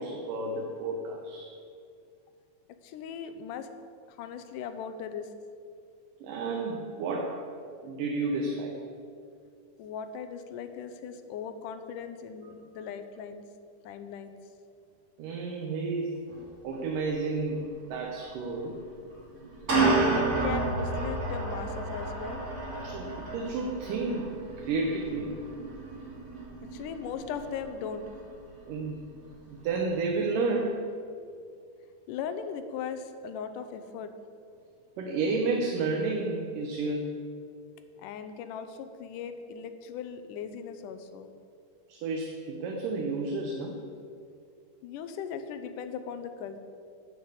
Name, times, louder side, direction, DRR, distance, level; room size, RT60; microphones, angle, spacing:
voice 1, 0.0-1.5 6.2-7.5 7.8-8.8 15.2-16.2 16.6-18.8 22.8-25.3 28.7-29.0 29.5-30.8 35.0-37.0 41.9-43.8, right 3 dB, 85° right, 1 dB, 2.6 m, -31 dB
voice 2, 2.7-3.7 4.1-5.3 9.8-13.4 13.8-14.4 19.7-22.4 26.6-28.1 32.1-34.1 38.0-41.3 44.8-46.6, left 7 dB, 80° left, 9 dB, 2.3 m, -38 dB
sound 1, 16.3-16.4 16.7-16.9 18.2-18.3 19.3-28.5, right 3 dB, 25° right, 2.9 m, -31 dB
9.3 x 7.9 x 8.3 m, 2.3 s
omnidirectional pair, 3.7 m